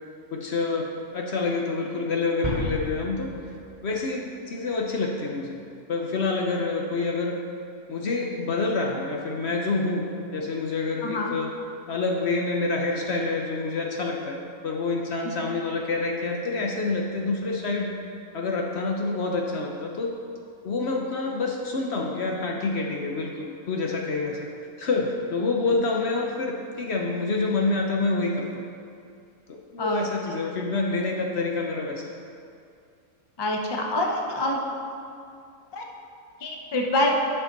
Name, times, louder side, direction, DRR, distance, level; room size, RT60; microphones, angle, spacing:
voice 1, 0.3-3.3 3.8-5.6 5.9-7.4 7.9-10.0 10.3-11.6 11.9-14.4 14.6-17.9 18.3-20.2 20.6-24.5 24.8-28.5 29.5-32.1, left 3 dB, 55° left, 0 dB, 0.8 m, -27 dB
sound 1, 2.4-4.5, equal, 20° right, 2.3 m, -33 dB
voice 2, 11.0-11.3 29.8-30.0 33.4-34.6 35.7-35.8 36.4-37.1, left 1 dB, 25° left, 0 dB, 0.5 m, -26 dB
9.9 x 5.9 x 4.0 m, 2.4 s
omnidirectional pair, 1.5 m